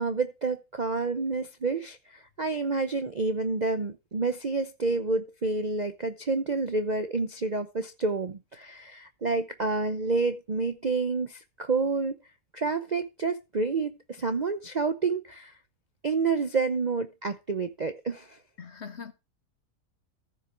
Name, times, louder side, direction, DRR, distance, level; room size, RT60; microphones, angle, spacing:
voice 1, 0.0-12.2 12.5-15.5 16.0-18.4, right 3 dB, 40° right, 0.6 m, -29 dB
voice 2, 18.6-19.1, left 6 dB, 45° left, 1.2 m, -41 dB
14.5 x 6.0 x 4.6 m
omnidirectional pair, 1.7 m